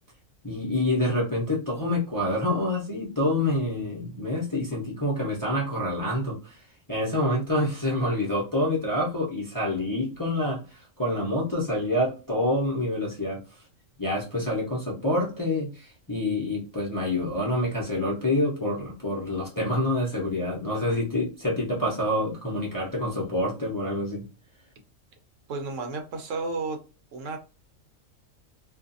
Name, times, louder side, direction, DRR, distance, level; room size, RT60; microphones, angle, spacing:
voice 1, 0.4-6.6 6.9-13.4 14.0-24.2, left 1 dB, 20° left, -5 dB, 0.7 m, -27 dB
voice 2, 25.5-26.8 27.1-27.4, right 3 dB, 70° right, 5 dB, 1.0 m, -32 dB
2.5 x 2.5 x 2.6 m, 0.32 s
omnidirectional pair, 1.4 m